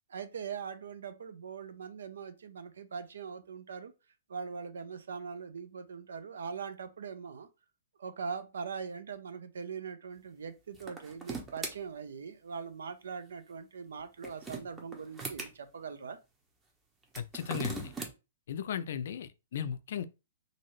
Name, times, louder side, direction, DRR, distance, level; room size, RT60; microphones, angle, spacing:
voice 1, 0.1-3.9 4.3-7.5 8.0-16.2, right 6 dB, 80° right, 0.5 m, -41 dB
sound 1, 10.7-11.7 14.0-15.5 17.0-18.1, right 3 dB, 15° right, 0.7 m, -39 dB
voice 2, 17.1-17.9 18.5-20.0, left 8 dB, 65° left, 0.4 m, -36 dB
2.6 x 2.5 x 3.1 m
hypercardioid pair, 130°, 0 cm